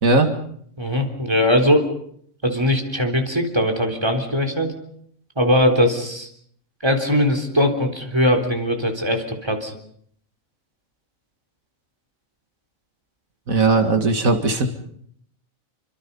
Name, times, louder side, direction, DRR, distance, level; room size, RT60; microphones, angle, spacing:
voice 1, 0.8-1.9 2.4-4.7 5.4-6.3 6.8-9.7, left 1 dB, 20° right, 3 dB, 3.8 m, -20 dB
voice 2, 13.5-14.7, right 3 dB, 85° right, 6 dB, 2.5 m, -18 dB
29.0 x 25.0 x 5.6 m, 0.66 s
omnidirectional pair, 1.4 m